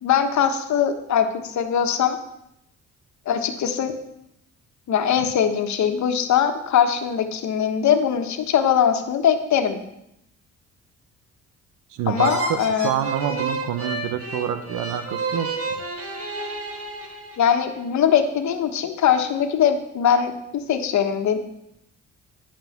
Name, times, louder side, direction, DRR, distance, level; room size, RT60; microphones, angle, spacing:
voice 1, 0.0-2.2 3.2-3.9 4.9-9.8 12.1-12.9 17.4-21.4, left 8 dB, 70° left, 7 dB, 1.4 m, -21 dB
voice 2, 11.9-15.8, right 9 dB, 85° right, 10 dB, 0.9 m, -27 dB
sound 1, 12.1-17.7, right 3 dB, 50° right, 2.1 m, -31 dB
10.0 x 5.8 x 7.1 m, 0.80 s
cardioid pair, 90°, 30 cm